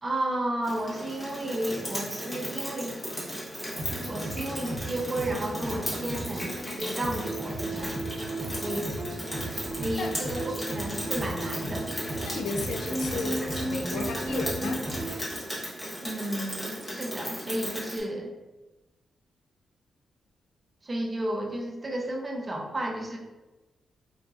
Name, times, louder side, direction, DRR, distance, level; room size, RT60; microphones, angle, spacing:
voice 1, 0.0-2.9 4.0-8.9 9.8-11.9 16.0-18.3 20.8-23.2, right 1 dB, 30° right, 0 dB, 0.6 m, -33 dB
Rain, 0.6-18.0, equal, 20° left, 1.0 m, -36 dB
sound 1, 3.7-15.1, right 1 dB, 45° right, 0.9 m, -35 dB
voice 2, 10.0-10.4 12.3-14.8, left 3 dB, 90° left, 4 dB, 0.3 m, -34 dB
3.9 x 2.5 x 2.4 m, 1.1 s
wide cardioid pair, 115°, 0 cm